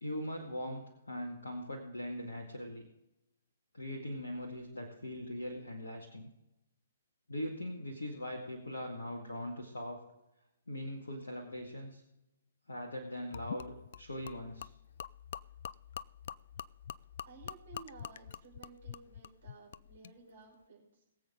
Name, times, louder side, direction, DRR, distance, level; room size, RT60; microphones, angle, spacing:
voice 1, 0.0-2.8 3.7-6.3 7.3-10.0 10.7-12.0 12.7-14.7, left 1 dB, 70° left, 2 dB, 1.9 m, -41 dB
Gurgling / Liquid, 13.3-20.2, left 9 dB, 50° left, 0.4 m, -46 dB
voice 2, 17.3-21.0, right 4 dB, 55° right, -3 dB, 5.1 m, -55 dB
22.0 x 7.8 x 3.7 m, 0.91 s
figure-of-eight pair, 125°, 0 cm